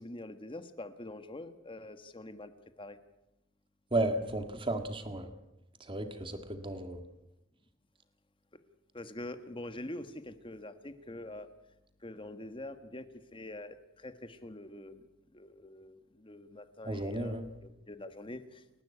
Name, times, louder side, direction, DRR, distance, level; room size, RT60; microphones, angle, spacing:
voice 1, 0.0-2.5 2.8-3.0 8.9-11.5 12.0-15.0 15.3-18.4, left 1 dB, 25° left, 10 dB, 1.4 m, -45 dB
voice 2, 3.9-5.3 5.8-7.0 16.8-17.5, right 2 dB, 25° right, 7 dB, 2.1 m, -33 dB
29.5 x 12.0 x 8.5 m, 0.94 s
head